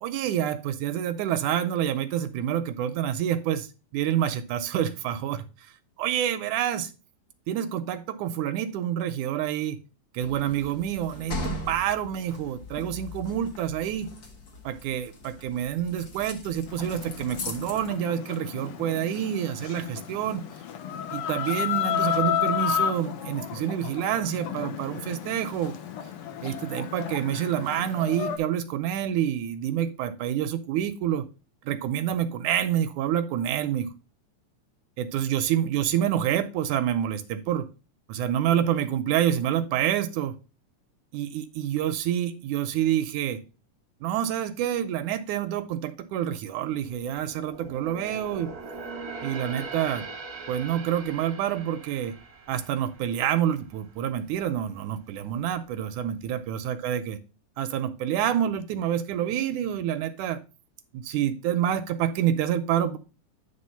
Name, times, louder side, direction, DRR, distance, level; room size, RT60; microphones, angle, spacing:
voice 1, 0.0-3.7 3.9-5.7 6.0-6.9 7.5-9.8 10.1-14.1 14.7-20.4 21.1-25.7 26.4-31.3 31.7-33.9 35.0-37.7 38.1-40.4 41.1-43.4 44.0-48.5 49.2-50.1 50.5-52.2 52.5-57.2 57.6-60.4 60.9-63.0, right 10 dB, 80° right, 11 dB, 1.9 m, -27 dB
sound 1, 10.2-17.9, left 2 dB, 60° left, 1.0 m, -39 dB
Chicken rooster, 16.7-28.4, left 9 dB, 80° left, 1.3 m, -32 dB
sound 2, 46.6-54.0 54.4-54.6 55.2-55.9 56.2-56.3, right 3 dB, 60° right, 0.9 m, -41 dB
9.7 x 3.3 x 5.5 m, 0.33 s
omnidirectional pair, 3.6 m